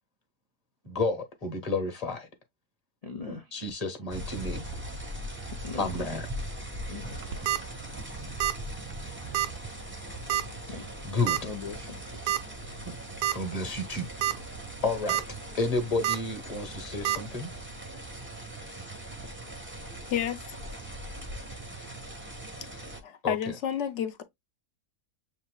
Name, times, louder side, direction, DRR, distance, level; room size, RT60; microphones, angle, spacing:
voice 1, 0.8-2.3 3.3-4.6 5.8-6.3 11.0-11.4 12.8-12.9 13.3-14.1 14.8-15.2 15.6-17.5 23.2-23.5, left 3 dB, 25° left, 1.0 m, -31 dB
voice 2, 3.0-3.5 5.5-5.9 6.9-7.6 7.9-8.1 10.7-10.9 11.4-12.2, left 5 dB, 80° left, 0.3 m, -41 dB
sound 1, 4.1-23.0, right 1 dB, 10° right, 0.6 m, -40 dB
sound 2, 7.1-7.6 8.4-8.7 8.9-9.0 9.3-9.5 10.3-10.6 11.3-11.4 12.3-12.4 12.9-13.0 13.2-13.3 14.0-14.3 14.8-15.2 16.0-16.2 17.0-17.2, right 12 dB, 80° right, 1.1 m, -27 dB
voice 3, 20.1-20.6 23.0-24.2, left 9 dB, 65° left, 0.8 m, -30 dB
7.2 x 2.7 x 2.2 m
omnidirectional pair, 1.7 m